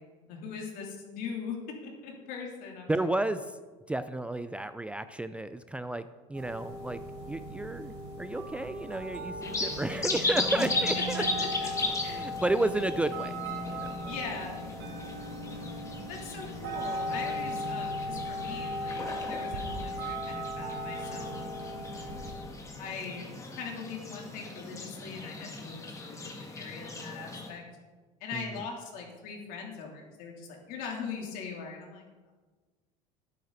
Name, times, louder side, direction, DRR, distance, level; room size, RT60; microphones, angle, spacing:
voice 1, 0.3-3.1 10.5-10.7 10.9-11.7 12.0-12.5 14.1-14.7 16.1-21.4 21.7-21.8 22.8-23.3 23.6-27.6 28.2-32.0, left 5 dB, 65° left, 0 dB, 3.3 m, -41 dB
voice 2, 2.9-3.6 3.9-11.2 12.1-13.3 13.7-13.9 28.3-28.7, right 2 dB, 10° right, 12 dB, 0.4 m, -32 dB
sound 1, 6.3-22.3, equal, 85° right, 3.5 m, -38 dB
sound 2, 9.4-27.5, left 2 dB, 20° left, 2.1 m, -37 dB
13.0 x 9.3 x 4.1 m, 1.4 s
supercardioid pair, 110°, 15 cm